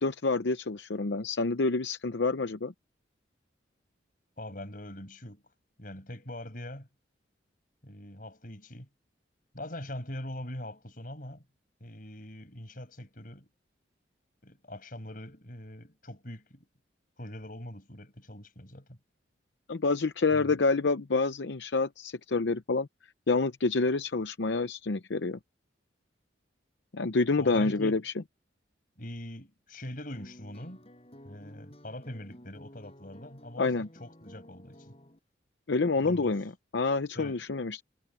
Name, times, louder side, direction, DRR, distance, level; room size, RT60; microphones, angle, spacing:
voice 1, 0.0-2.7 19.7-22.9 23.3-25.4 26.9-28.1 33.6-33.9 35.7-37.8, left 3 dB, 75° left, 0.7 m, -28 dB
voice 2, 4.4-5.4 5.8-6.9 7.8-8.9 9.5-11.5 11.8-13.5 14.4-16.7 17.2-19.0 20.3-20.7 27.4-28.0 29.0-30.8 31.2-35.0 36.0-36.3 37.1-37.5, left 1 dB, 50° left, 6.1 m, -43 dB
sound 1, 30.1-35.2, equal, 35° left, 6.4 m, -53 dB
head